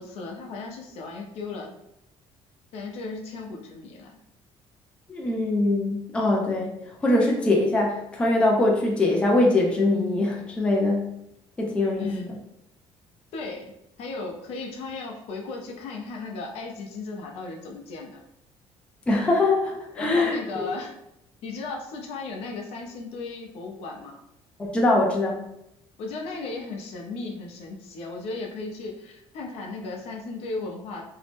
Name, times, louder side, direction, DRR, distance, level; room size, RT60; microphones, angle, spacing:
voice 1, 0.0-1.7 2.7-4.2 11.9-12.3 13.3-13.7 14.0-18.2 19.9-20.9 21.4-24.2 26.0-31.0, left 3 dB, 65° left, 1 dB, 0.5 m, -36 dB
voice 2, 5.1-6.7 7.0-11.1 11.6-12.1 19.1-20.6 24.6-25.4, left 2 dB, 10° left, -1 dB, 0.3 m, -22 dB
2.6 x 2.0 x 3.3 m, 0.81 s
cardioid pair, 170°, 11 cm